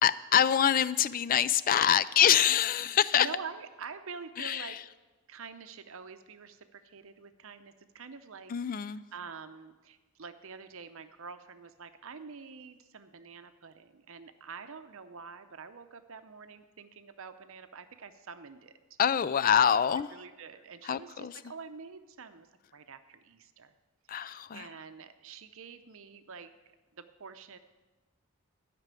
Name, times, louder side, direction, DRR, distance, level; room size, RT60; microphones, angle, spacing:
voice 1, 0.0-3.3 4.4-4.8 8.5-9.0 19.0-20.1 20.9-21.3 24.1-24.7, left 9 dB, 40° left, 17 dB, 0.3 m, -25 dB
voice 2, 2.4-4.8 5.3-19.0 20.1-22.5 22.7-23.7 24.1-26.5 26.9-27.6, right 5 dB, 60° right, 9 dB, 0.7 m, -47 dB
12.5 x 6.0 x 8.2 m, 1.2 s
head